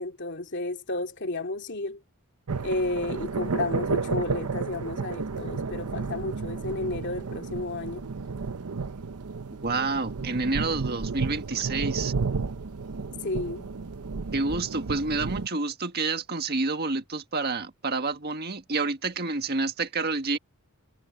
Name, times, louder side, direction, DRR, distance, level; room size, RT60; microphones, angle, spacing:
voice 1, 0.0-2.0 2.6-8.1 13.2-13.7, left 2 dB, 55° left, 2.8 m, -32 dB
sound 1, 2.5-15.5, right 4 dB, 90° right, 0.8 m, -32 dB
voice 2, 9.6-12.1 14.3-20.4, right 3 dB, 45° right, 1.6 m, -29 dB
head